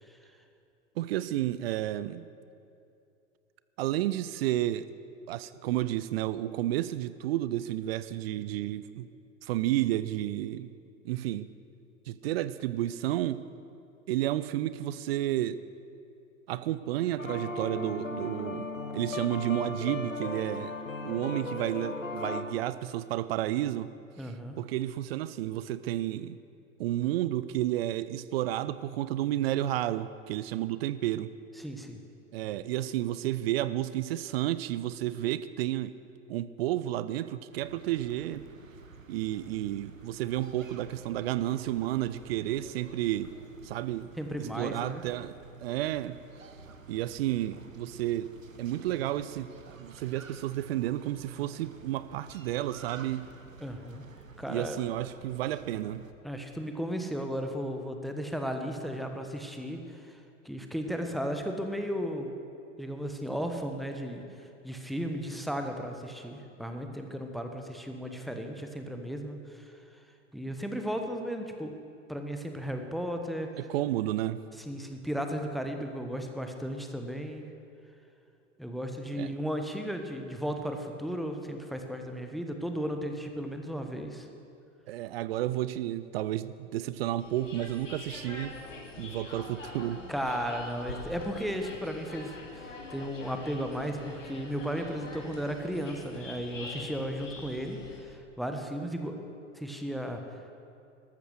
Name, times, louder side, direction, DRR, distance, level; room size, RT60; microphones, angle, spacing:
voice 1, 1.0-2.3 3.8-4.9 5.3-9.1 9.4-10.7 11.0-11.5 12.1-13.4 14.1-15.6 16.5-20.7 21.0-23.9 24.2-24.3 24.6-26.4 26.8-31.3 32.3-35.9 36.3-38.4 39.1-43.3 43.6-44.1 44.4-45.3 45.6-46.2 46.9-48.3 48.6-53.3 54.5-56.0 73.6-74.4 79.2-79.3 84.9-88.6 89.0-90.0, right 14 dB, 50° right, 15 dB, 0.6 m, -31 dB
sound 1, 17.2-22.4, left 3 dB, 90° left, 0.9 m, -36 dB
voice 2, 24.2-24.6 31.6-32.0 44.2-45.0 53.6-54.0 54.4-54.8 56.2-62.3 62.8-70.0 70.3-71.7 72.1-73.5 74.7-77.4 78.6-84.3 90.1-99.2 99.5-100.5, equal, ahead, 5 dB, 1.2 m, -35 dB
sound 2, 37.5-56.1, right 4 dB, 85° right, 1.0 m, -51 dB
sound 3, 87.2-98.0, left 3 dB, 70° left, 2.4 m, -44 dB
13.5 x 13.0 x 6.4 m, 2.6 s
figure-of-eight pair, 85°, 39 cm